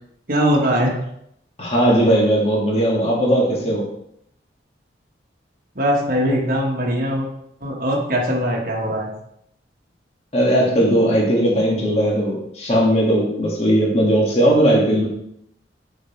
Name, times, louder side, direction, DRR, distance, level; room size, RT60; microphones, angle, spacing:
voice 1, 0.3-1.0 5.7-7.3 7.6-9.1, equal, 50° right, -1 dB, 1.2 m, -21 dB
voice 2, 1.6-3.8 10.3-15.1, equal, 35° left, -3 dB, 1.5 m, -18 dB
6.6 x 4.4 x 4.4 m, 0.74 s
head